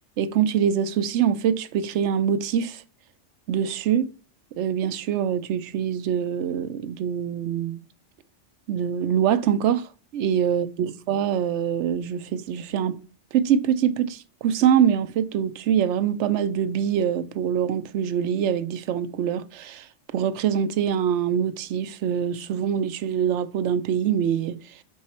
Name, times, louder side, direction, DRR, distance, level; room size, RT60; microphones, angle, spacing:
voice 1, 0.2-2.8 3.5-4.1 4.6-7.8 8.7-13.0 13.3-19.9 20.1-24.6, right 8 dB, 75° right, 0.9 m, -24 dB
6.3 x 4.6 x 4.2 m
omnidirectional pair, 1.2 m